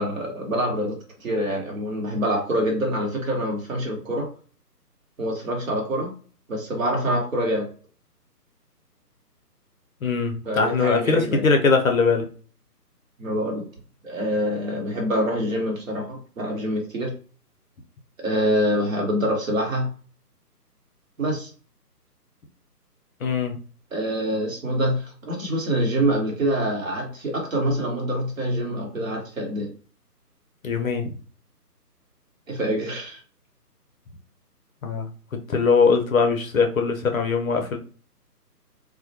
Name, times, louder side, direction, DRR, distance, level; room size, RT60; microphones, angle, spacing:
voice 1, 0.0-4.3 5.2-6.1 6.5-7.7 10.4-11.4 13.2-13.6 14.0-17.1 18.2-19.9 21.2-21.5 23.9-29.7 32.5-33.2, equal, 55° right, 1 dB, 1.0 m, -25 dB
voice 2, 10.0-12.2 23.2-23.6 30.6-31.1 34.8-37.8, left 4 dB, 55° left, 3 dB, 0.6 m, -21 dB
2.1 x 2.1 x 2.7 m, 0.40 s
figure-of-eight pair, 145°, 48 cm